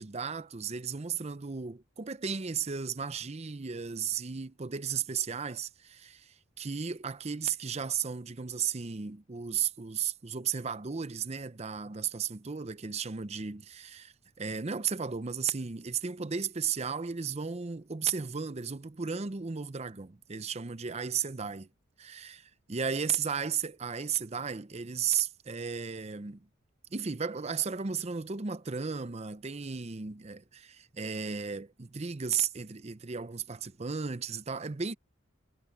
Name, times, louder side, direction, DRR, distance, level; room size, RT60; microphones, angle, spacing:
voice 1, 0.0-21.6 22.0-26.5 26.9-35.0, right 6 dB, 30° right, 0.6 m, -34 dB
head